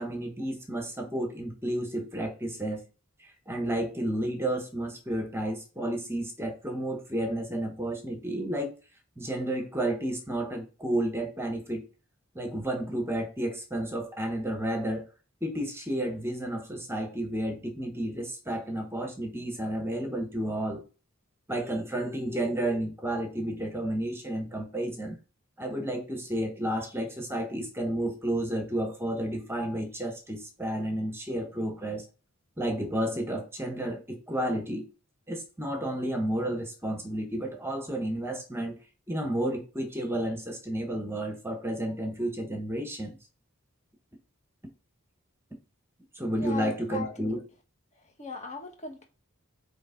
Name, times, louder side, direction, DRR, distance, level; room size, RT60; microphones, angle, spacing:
voice 1, 0.0-2.8 3.2-8.7 9.2-11.8 12.3-15.1 15.4-20.8 21.5-25.2 25.6-32.0 32.6-34.8 35.3-38.8 39.1-43.2 46.1-47.4, right 1 dB, 10° right, 1.3 m, -31 dB
voice 2, 46.4-47.4 48.2-49.1, left 4 dB, 35° left, 1.5 m, -38 dB
8.8 x 3.5 x 3.9 m
head